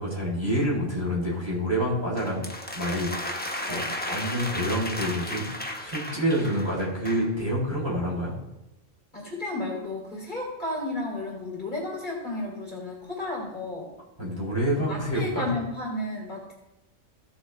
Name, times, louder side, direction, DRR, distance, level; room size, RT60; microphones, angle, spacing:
voice 1, 0.0-2.4 2.8-3.1 3.7-3.8 4.1-5.4 5.8-8.3 14.2-15.5, equal, 20° right, -5 dB, 3.7 m, -27 dB
sound 1, 2.2-7.3, left 1 dB, 10° left, 0.8 m, -34 dB
voice 2, 9.1-13.9 14.9-16.5, left 2 dB, 35° left, -3 dB, 3.2 m, -33 dB
16.0 x 7.4 x 3.3 m, 0.94 s
omnidirectional pair, 1.3 m